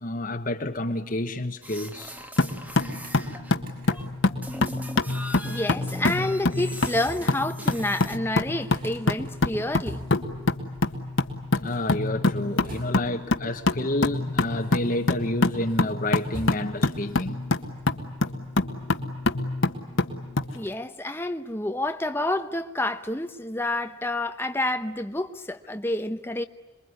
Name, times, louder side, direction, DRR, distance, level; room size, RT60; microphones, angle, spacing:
voice 1, 0.0-2.2 11.6-17.4, left 1 dB, 45° left, 1.2 m, -29 dB
sound 1, 1.6-3.6 3.9-8.2, equal, 10° right, 1.4 m, -40 dB
sound 2, 2.4-20.5, left 2 dB, 75° left, 1.7 m, -26 dB
sound 3, 2.6-4.3 5.5-7.5 7.9-8.0 8.1-10.4 11.5-13.3 14.0-15.3 15.6-17.0, equal, 45° right, 6.1 m, -47 dB
voice 2, 5.4-10.0 20.5-26.4, left 1 dB, 10° left, 0.9 m, -29 dB
27.5 x 22.5 x 9.7 m
head